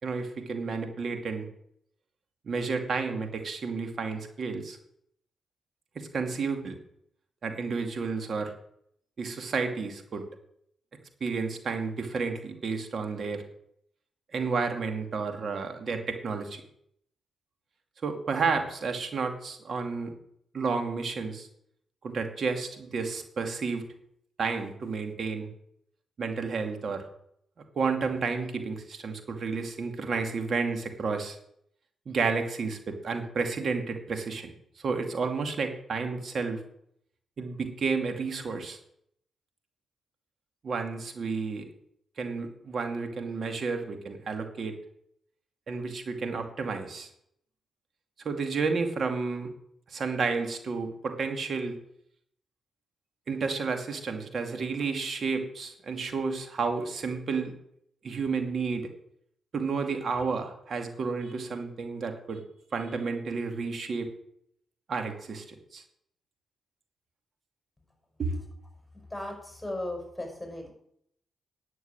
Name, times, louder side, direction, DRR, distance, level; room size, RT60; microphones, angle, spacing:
voice 1, 0.0-1.5 2.5-4.8 6.0-6.8 7.4-8.5 9.2-10.2 11.2-13.4 14.3-16.6 18.0-20.1 20.5-21.5 22.0-23.9 24.4-25.5 26.2-27.0 27.7-31.4 32.1-34.5 34.8-36.6 37.4-38.8 40.6-41.7 42.2-44.8 45.7-47.1 48.2-49.5 49.9-51.8 53.3-57.5 58.0-58.9 59.5-62.4 62.7-64.1 64.9-65.4 65.7-65.8 68.2-68.4, right 4 dB, 55° right, 5 dB, 2.4 m, -31 dB
voice 2, 68.8-70.7, left 1 dB, 10° left, 2 dB, 5.8 m, -37 dB
9.9 x 7.9 x 8.9 m, 0.70 s
supercardioid pair, 50°, 0 cm